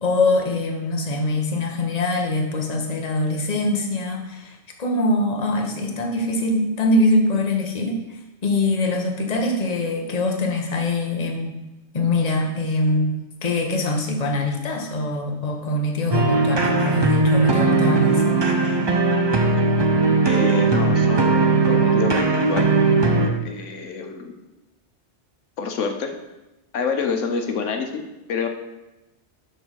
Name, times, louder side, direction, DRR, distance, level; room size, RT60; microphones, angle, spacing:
voice 1, 0.0-11.5 11.9-13.1 13.4-18.2, left 2 dB, 35° left, 2 dB, 1.1 m, -23 dB
sound 1, 16.1-23.3, right 3 dB, 30° right, 0.6 m, -18 dB
voice 2, 20.2-22.7 23.4-24.3 25.6-26.1 26.7-28.0 28.3-28.5, left 5 dB, 90° left, 5 dB, 1.2 m, -27 dB
6.1 x 5.4 x 6.3 m, 1.0 s
omnidirectional pair, 1.2 m